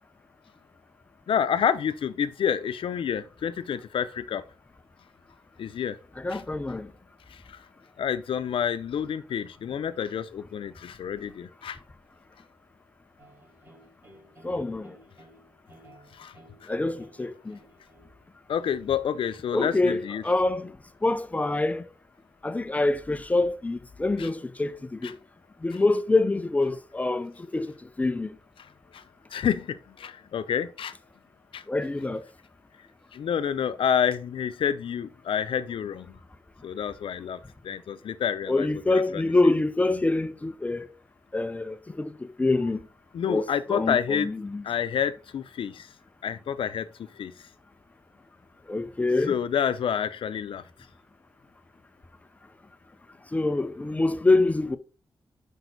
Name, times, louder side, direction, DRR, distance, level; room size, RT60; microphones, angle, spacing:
voice 1, 1.3-4.4 5.6-6.0 6.3-6.4 7.3-7.6 8.0-11.8 16.1-16.3 18.5-20.2 24.2-24.3 25.0-25.2 28.6-29.0 29.3-30.9 31.5-31.6 33.1-36.2 36.6-39.3 43.1-44.3 44.6-45.9 46.2-47.5 49.3-50.6, left 8 dB, 85° left, 0.6 m, -29 dB
voice 2, 6.2-6.9 14.4-14.9 16.7-17.6 19.5-20.7 21.0-21.9 22.4-25.1 25.6-27.7 28.0-28.3 31.7-32.2 38.5-40.9 41.3-42.1 42.4-42.8 43.3-44.6 48.7-49.3 53.3-54.8, left 2 dB, 15° left, 0.4 m, -25 dB
sound 1, 13.2-18.2, right 1 dB, 25° right, 2.2 m, -55 dB
6.2 x 5.4 x 4.0 m
wide cardioid pair, 170°, 9 cm